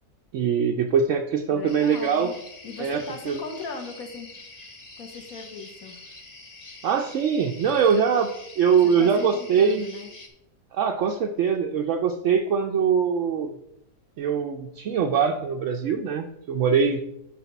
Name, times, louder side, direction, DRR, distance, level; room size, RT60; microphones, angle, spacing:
voice 1, 0.3-2.3 2.8-3.4 6.8-8.3 8.6-9.9 10.7-13.5 14.2-17.0, right 6 dB, 70° right, 3 dB, 0.7 m, -22 dB
voice 2, 1.5-2.3 2.6-4.3 5.0-6.0 8.8-10.1, left 4 dB, 60° left, 4 dB, 1.4 m, -38 dB
sound 1, 1.7-10.3, left 3 dB, 30° left, 0.9 m, -45 dB
8.4 x 3.5 x 5.8 m, 0.81 s
omnidirectional pair, 1.8 m